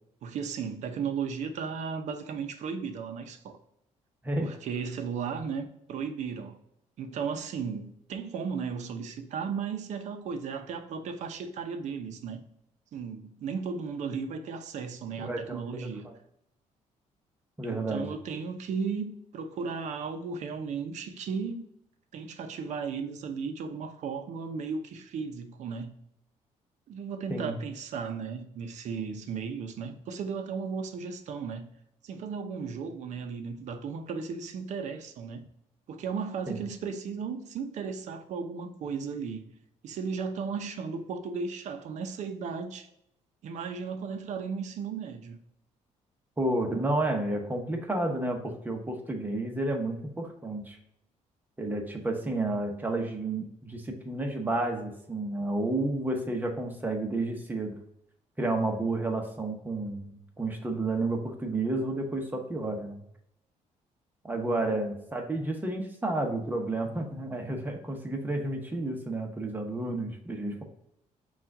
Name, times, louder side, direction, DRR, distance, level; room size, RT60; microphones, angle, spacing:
voice 1, 0.2-3.6 4.4-6.6 7.0-12.4 12.9-16.1 17.6-21.7 22.1-25.9 26.9-31.7 32.0-35.5 35.9-39.5 39.8-42.9 43.4-45.4, right 5 dB, 65° right, 0.7 m, -35 dB
voice 2, 15.2-16.1 17.6-18.0 27.3-27.6 36.5-36.6 46.4-50.8 51.6-57.8 58.4-60.1 60.4-63.0 64.2-70.6, right 2 dB, 15° right, 0.9 m, -31 dB
5.6 x 2.5 x 3.6 m
cardioid pair, 125°, 13 cm